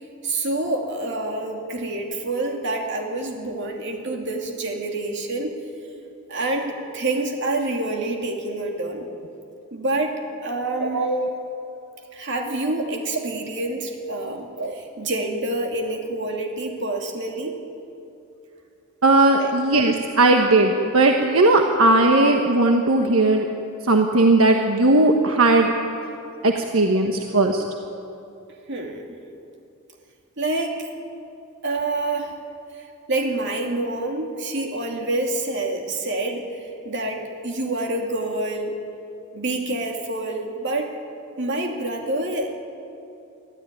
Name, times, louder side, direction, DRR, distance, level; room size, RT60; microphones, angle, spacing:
voice 1, 0.2-5.5 6.3-9.1 9.7-11.1 12.1-17.6 19.3-19.5 28.7-29.2 30.4-30.9 31.6-32.3 33.1-38.8 39.3-40.9 41.4-42.5, right 2 dB, 55° right, 2 dB, 2.7 m, -27 dB
voice 2, 10.8-11.3 14.6-14.7 19.0-23.5 23.9-25.7 26.4-27.6, right 2 dB, 75° right, 3 dB, 1.4 m, -18 dB
23.5 x 14.5 x 9.9 m, 2.7 s
head